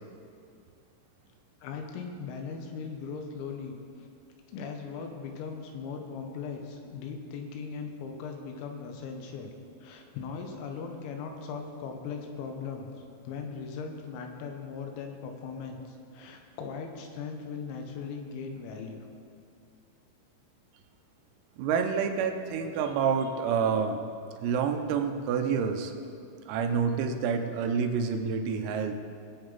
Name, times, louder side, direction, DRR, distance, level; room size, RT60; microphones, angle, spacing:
voice 1, 1.6-3.8 4.5-9.5 9.8-12.9 13.3-19.1, left 5 dB, 85° left, 4 dB, 3.8 m, -39 dB
voice 2, 21.6-24.1 24.4-25.9 26.5-29.0, right 6 dB, 85° right, 5 dB, 3.6 m, -28 dB
21.0 x 7.9 x 4.0 m, 2.4 s
omnidirectional pair, 5.9 m